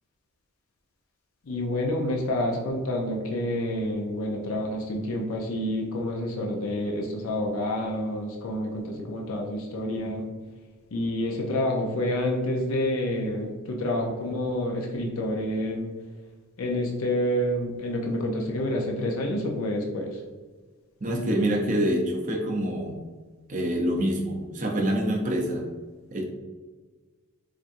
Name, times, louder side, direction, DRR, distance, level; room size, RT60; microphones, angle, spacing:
voice 1, 1.5-10.3 10.9-15.9 16.6-20.2, left 1 dB, 70° left, 0 dB, 0.5 m, -28 dB
voice 2, 21.0-23.0 23.5-25.7 26.1-26.2, right 1 dB, 35° right, 0 dB, 0.5 m, -26 dB
4.4 x 2.5 x 2.6 m, 1.4 s
head